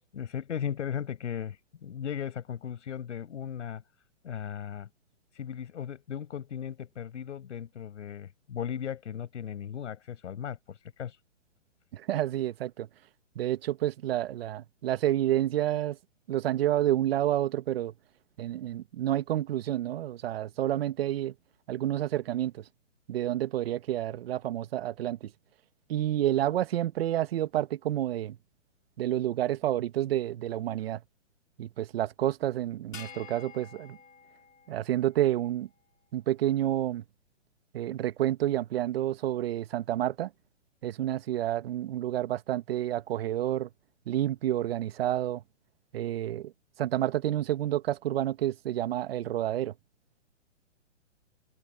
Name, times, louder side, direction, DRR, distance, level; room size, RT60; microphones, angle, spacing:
voice 1, 0.1-3.8 4.2-4.9 5.3-11.2, left 8 dB, 65° left, 6.7 m, -37 dB
voice 2, 11.9-12.9 13.3-16.0 16.3-17.9 18.4-21.3 21.7-22.6 23.1-25.3 25.9-28.4 29.0-31.0 31.6-34.0 34.7-35.7 36.1-37.0 37.7-40.3 40.8-43.7 44.1-45.4 45.9-46.5 46.8-49.7, right 13 dB, 50° right, 1.5 m, -29 dB
sound 1, 32.9-35.5, left 6 dB, 80° left, 5.4 m, -49 dB
hypercardioid pair, 145°, 38 cm